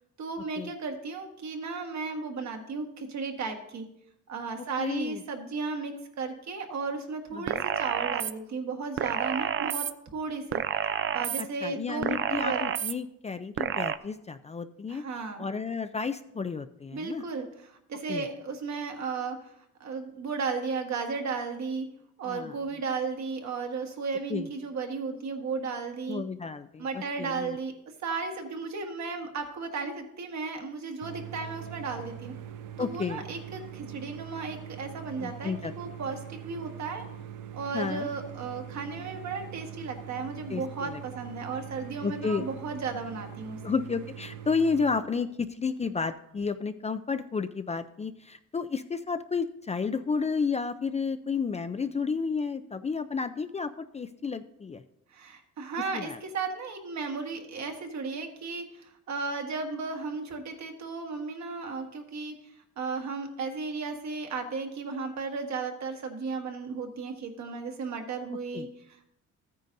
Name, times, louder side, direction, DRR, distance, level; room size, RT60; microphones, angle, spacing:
voice 1, 0.2-3.8 4.3-9.9 10.1-10.6 11.1-12.6 14.9-15.5 16.9-21.9 22.2-26.2 26.8-27.7 28.0-32.3 32.8-37.0 37.5-43.6 55.1-69.1, right 4 dB, 65° right, 3 dB, 1.6 m, -35 dB
voice 2, 4.6-5.2 7.3-7.6 11.4-15.0 15.4-17.2 18.1-18.2 22.3-22.6 24.3-24.5 26.1-26.9 27.2-27.6 32.8-33.2 35.2-35.7 37.7-38.1 40.5-41.0 42.0-42.4 43.6-54.8 55.9-56.2 68.5-68.7, left 5 dB, 20° left, 10 dB, 0.4 m, -31 dB
sound 1, 7.5-8.3 9.0-9.9 10.5-11.4 12.0-12.9 13.6-14.0, right 9 dB, 45° right, 0.4 m, -29 dB
sound 2, 31.0-45.0, right 10 dB, 85° right, 0.7 m, -43 dB
14.0 x 9.2 x 2.6 m, 0.79 s
cardioid pair, 90°, 30 cm